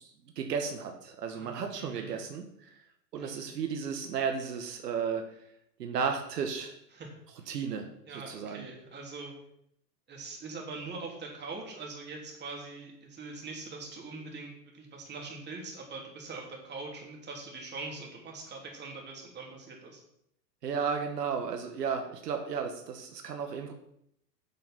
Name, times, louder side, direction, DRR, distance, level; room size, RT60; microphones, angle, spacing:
voice 1, 0.0-2.8 3.1-5.2 5.8-6.7 7.5-7.9 8.3-8.7 20.6-23.7, right 6 dB, 70° right, 4 dB, 1.6 m, -34 dB
voice 2, 1.3-2.2 3.1-3.4 6.9-7.1 7.4-7.5 8.1-9.3 10.1-20.0, right 3 dB, 20° right, 0 dB, 3.1 m, -43 dB
8.4 x 7.4 x 6.0 m, 0.74 s
hypercardioid pair, 115°, 49 cm